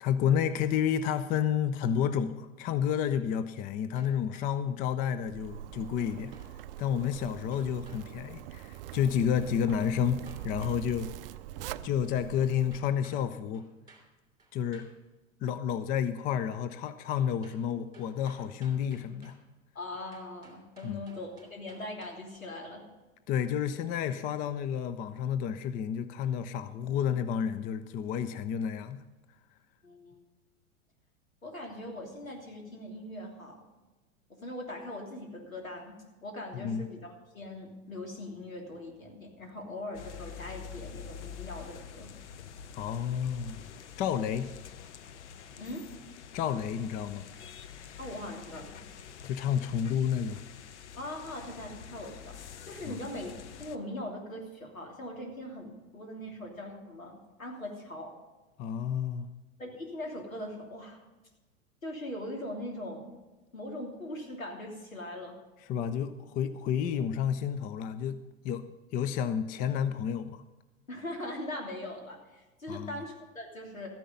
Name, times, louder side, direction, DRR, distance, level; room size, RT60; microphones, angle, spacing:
voice 1, 0.0-6.3 6.8-11.1 11.8-13.6 14.5-14.9 15.4-19.4 20.8-21.0 23.3-29.0 36.5-36.9 42.7-43.6 44.0-44.5 46.3-47.3 49.2-50.4 52.9-53.0 58.6-59.3 65.7-68.6 68.9-70.4 72.7-73.0, left 8 dB, 20° left, 12 dB, 0.5 m, -30 dB
sound 1, 3.9-4.7 6.0-6.6 7.5-8.0 9.9-10.8 12.7-13.2 13.5-14.1 14.4-14.9 17.1-17.6 17.9-19.4 20.1-22.4, right 2 dB, 10° right, 3.0 m, -57 dB
Zipper (clothing), 5.2-12.8, right 12 dB, 45° right, 0.5 m, -43 dB
voice 2, 19.7-22.8 29.8-30.2 31.4-33.6 34.4-35.9 36.2-42.1 45.6-45.8 48.0-48.8 51.0-53.3 53.6-58.1 59.6-61.0 61.8-63.1 63.5-65.3 70.9-73.9, left 1 dB, 80° left, 0 dB, 3.1 m, -41 dB
sound 2, 39.9-53.8, left 8 dB, 60° left, 0.9 m, -47 dB
13.5 x 10.0 x 5.5 m, 1.1 s
figure-of-eight pair, 90°, 40 cm